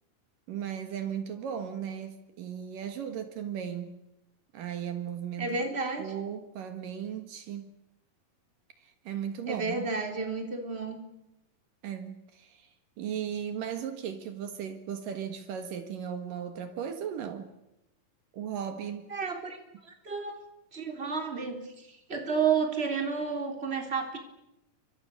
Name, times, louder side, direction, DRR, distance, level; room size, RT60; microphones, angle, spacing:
voice 1, 0.5-4.0 4.5-5.6 6.0-7.7 8.8-9.9 11.8-12.7 13.0-17.5 18.3-19.1, right 8 dB, 75° right, 3.3 m, -36 dB
voice 2, 5.4-6.0 9.5-11.0 19.1-19.6 19.8-20.3 20.7-24.2, right 5 dB, 15° right, 3.7 m, -31 dB
29.5 x 25.0 x 6.8 m
omnidirectional pair, 4.0 m